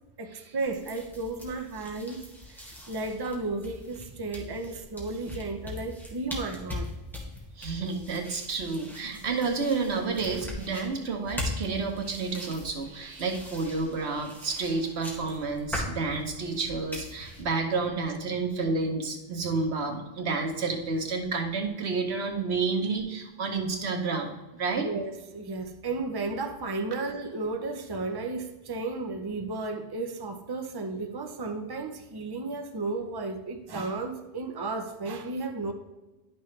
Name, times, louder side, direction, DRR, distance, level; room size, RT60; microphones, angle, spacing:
voice 1, 0.2-2.2 2.5-6.9 24.8-35.7, right 3 dB, 25° right, 5 dB, 0.6 m, -33 dB
sound 1, 0.6-17.4, left 1 dB, ahead, 1.7 m, -41 dB
voice 2, 7.6-24.9, right 4 dB, 90° right, 4 dB, 1.3 m, -30 dB
11.0 x 6.2 x 3.2 m, 1.1 s
omnidirectional pair, 1.1 m